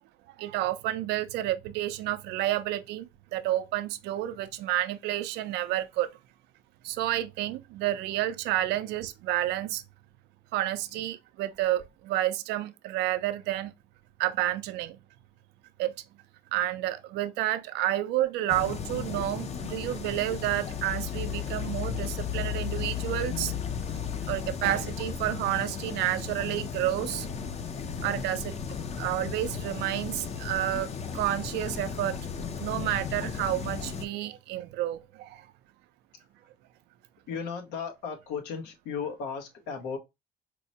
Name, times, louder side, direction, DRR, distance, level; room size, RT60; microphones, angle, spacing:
voice 1, 0.4-6.1 6.8-9.8 10.5-13.7 14.2-15.0 15.8-15.9 16.5-23.5 24.3-27.3 28.0-28.5 29.0-32.2 32.6-35.5, right 14 dB, 85° right, 0.4 m, -30 dB
sound 1, 18.5-34.1, left 7 dB, 40° left, 0.5 m, -35 dB
voice 2, 37.3-40.0, left 6 dB, 90° left, 0.9 m, -35 dB
4.6 x 2.1 x 2.7 m
cardioid pair, 110°, 17 cm